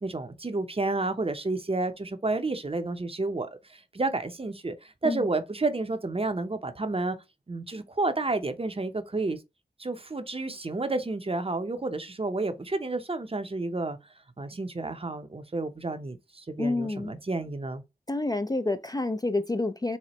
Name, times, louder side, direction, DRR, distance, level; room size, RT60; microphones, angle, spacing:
voice 1, 0.0-7.2 7.5-9.4 9.8-14.0 14.4-17.8, right 2 dB, 35° right, 0.6 m, -30 dB
voice 2, 16.6-17.1 18.1-20.0, left 2 dB, 25° left, 0.4 m, -28 dB
4.2 x 2.1 x 3.0 m
cardioid pair, 45°, 17 cm